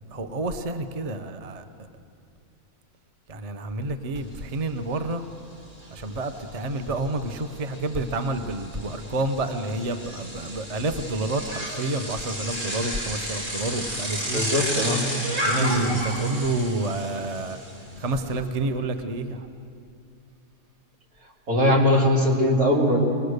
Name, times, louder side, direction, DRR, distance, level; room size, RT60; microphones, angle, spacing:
voice 1, 0.1-1.6 3.3-5.2 5.9-14.4 15.4-17.6 18.0-19.5, right 2 dB, 30° right, 8 dB, 0.8 m, -29 dB
Bicycle, 4.1-4.2 4.6-18.4, equal, 55° right, 4.7 m, -33 dB
voice 2, 14.3-15.0 15.5-15.9 21.5-23.0, left 1 dB, 85° right, -2 dB, 3.5 m, -21 dB
22.5 x 20.5 x 6.6 m, 2.5 s
omnidirectional pair, 1.5 m